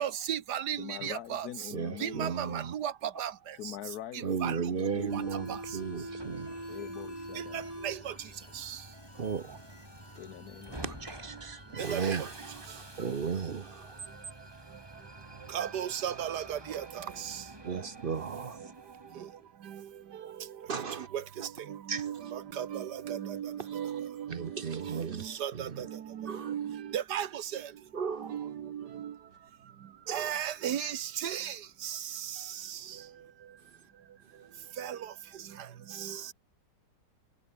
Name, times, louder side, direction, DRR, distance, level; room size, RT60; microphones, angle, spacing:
voice 1, 0.0-1.5 2.0-2.9 3.2-3.3 4.4-4.6 5.1-5.2 5.5-5.6 7.8-8.1 8.7-8.8 11.9-12.1 15.5-17.4 20.7-20.8 21.1-21.2 21.7-27.6 28.3-29.1 30.1-31.6 31.8-32.0 34.8-35.0 36.0-36.2, right 10 dB, 75° right, 1.7 m, -35 dB
voice 2, 0.8-2.6 3.5-5.9 6.7-7.7 10.1-11.4 12.8-13.5 36.0-36.3, left 11 dB, 70° left, 1.3 m, -45 dB
voice 3, 1.7-2.7 4.2-6.6 9.1-9.6 10.8-14.0 17.6-18.7 20.7-21.1 21.9-22.1 24.3-25.8 26.3-26.5 27.9-28.4 30.1-30.4, right 6 dB, 40° right, 0.8 m, -35 dB
Bass guitar, 4.9-8.6, left 1 dB, 20° left, 8.2 m, -63 dB
Subway metro underground, 5.1-19.4, right 1 dB, 15° right, 3.6 m, -46 dB
sound 1, 6.2-11.2, left 3 dB, 45° left, 3.0 m, -59 dB
omnidirectional pair, 1.8 m